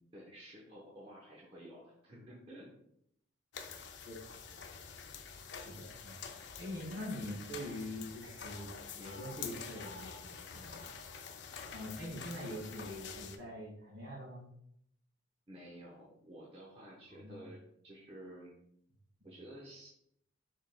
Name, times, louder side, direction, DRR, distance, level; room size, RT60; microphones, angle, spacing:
voice 1, 0.1-2.7 15.5-18.5 19.2-19.9, right 1 dB, 25° right, -4 dB, 0.8 m, -52 dB
sound 1, 3.5-13.4, left 6 dB, 60° left, 0.5 m, -47 dB
voice 2, 5.6-6.2 6.6-8.7 9.0-11.0 11.7-14.4 17.2-17.4, left 1 dB, 55° right, -2 dB, 1.8 m, -44 dB
6.5 x 3.6 x 2.2 m, 0.71 s
head